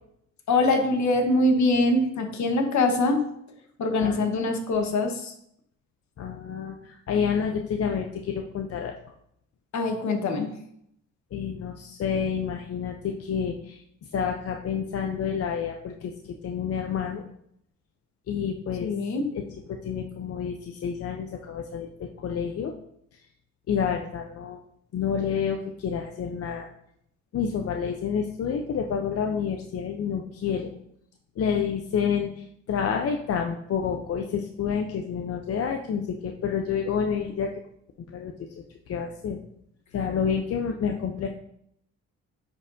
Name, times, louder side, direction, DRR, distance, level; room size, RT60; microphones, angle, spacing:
voice 1, 0.5-3.2 3.8-5.3 9.7-10.5 18.8-19.3, left 2 dB, 70° left, 4 dB, 1.3 m, -23 dB
voice 2, 6.2-8.9 11.3-13.8 14.1-17.2 18.3-18.9 19.7-21.9 22.2-22.7 23.7-24.6 24.9-26.7 27.3-30.7 31.4-37.5 38.1-38.3 38.9-39.4 39.9-41.3, left 7 dB, 50° left, 3 dB, 0.6 m, -29 dB
9.5 x 4.4 x 2.7 m, 0.73 s
cardioid pair, 90°, 30 cm